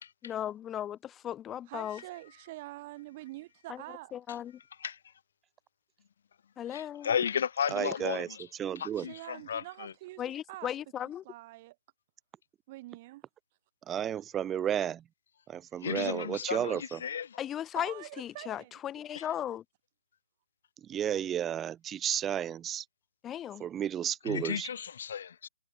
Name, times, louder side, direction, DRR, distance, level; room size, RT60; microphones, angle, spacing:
voice 1, 0.2-2.0 3.7-3.8 4.1-4.5 6.6-7.1 10.2-11.2 17.4-19.6 23.2-23.7, left 10 dB, 15° left, 3.3 m, -36 dB
voice 2, 1.7-4.1 9.0-10.2 10.5-10.7 11.2-11.8 12.7-13.2 17.7-19.4, right 19 dB, 35° right, 4.5 m, -46 dB
voice 3, 6.7-8.5 8.8-9.9 15.8-17.4 19.2-19.3 24.3-25.5, left 8 dB, 55° left, 5.2 m, -34 dB
voice 4, 7.7-8.3 8.6-9.1 13.9-15.0 15.5-17.0 20.9-22.8 23.6-24.7, right 10 dB, 15° right, 1.3 m, -32 dB
hypercardioid pair, 145°, 0 cm